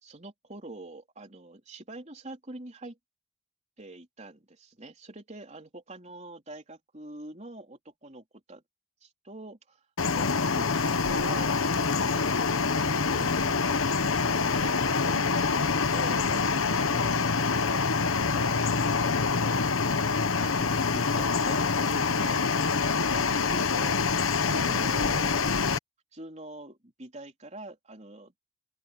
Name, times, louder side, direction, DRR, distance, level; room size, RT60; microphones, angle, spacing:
voice 1, 0.0-3.0 3.8-8.6 9.0-9.8 10.1-17.9 18.3-20.0 20.4-25.7 26.1-28.4, right 2 dB, 35° right, 4.1 m, -46 dB
sound 1, 10.0-25.8, left 4 dB, 90° left, 1.1 m, -26 dB
open air
head